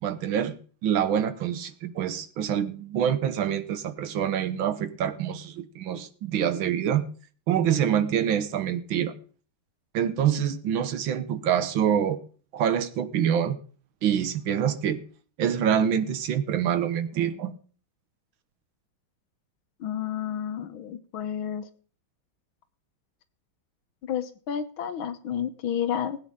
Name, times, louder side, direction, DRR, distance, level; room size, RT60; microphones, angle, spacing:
voice 1, 0.0-0.6 0.8-7.0 7.5-9.1 9.9-12.2 12.5-13.6 14.0-15.0 15.4-17.5, right 9 dB, 75° right, 12 dB, 1.7 m, -26 dB
voice 2, 19.8-21.6 24.0-26.2, left 9 dB, 75° left, 11 dB, 1.8 m, -31 dB
20.0 x 9.1 x 3.7 m, 0.41 s
omnidirectional pair, 2.3 m